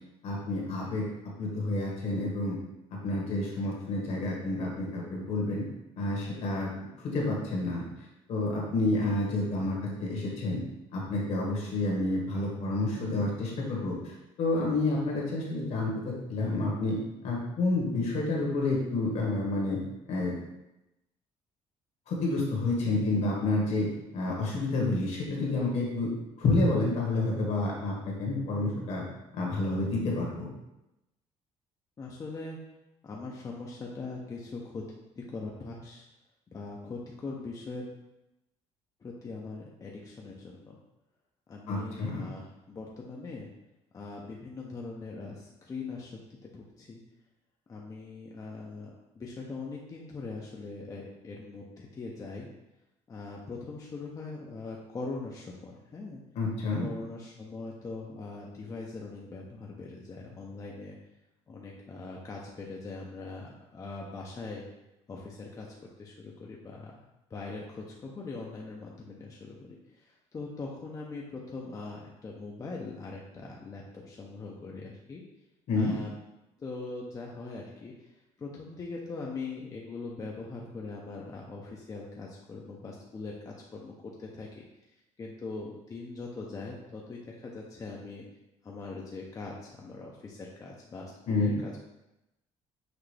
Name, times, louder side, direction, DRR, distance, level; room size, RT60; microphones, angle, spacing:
voice 1, 0.2-1.0 1.4-2.6 3.0-5.6 5.9-6.7 7.0-7.8 8.3-10.6 10.9-14.0 14.4-15.9 16.3-17.0 17.2-19.8 20.1-20.3 22.1-23.9 24.1-26.1 26.4-29.0 29.3-30.5 41.7-42.2 56.3-56.8 75.7-75.9 91.3-91.5, left 2 dB, 65° left, -3 dB, 1.6 m, -29 dB
voice 2, 32.0-32.6 33.0-34.8 35.2-36.1 36.5-37.9 39.0-40.8 41.5-43.5 43.9-47.0 47.7-52.5 53.1-56.2 56.8-61.0 61.5-64.6 65.1-65.7 66.0-66.9 67.3-75.2 75.7-76.2 76.6-77.9 78.4-84.5 85.2-88.2 88.6-91.8, left 3 dB, 30° left, -2 dB, 0.6 m, -41 dB
5.9 x 2.6 x 3.3 m, 0.93 s
cardioid pair, 120°, 12 cm